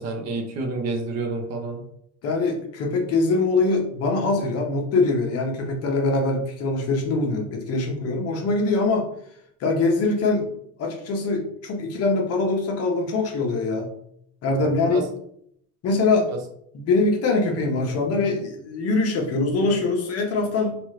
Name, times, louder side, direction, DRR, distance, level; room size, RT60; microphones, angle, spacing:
voice 1, 0.0-1.8 14.9-15.1 16.3-16.4, right 3 dB, 45° right, 3 dB, 0.7 m, -29 dB
voice 2, 2.2-9.1 9.6-10.5 10.8-13.9 14.4-15.0 15.8-16.3 16.7-20.8, left 3 dB, 45° left, 1 dB, 0.8 m, -23 dB
3.0 x 2.4 x 3.2 m, 0.69 s
cardioid pair, 140°, 35 cm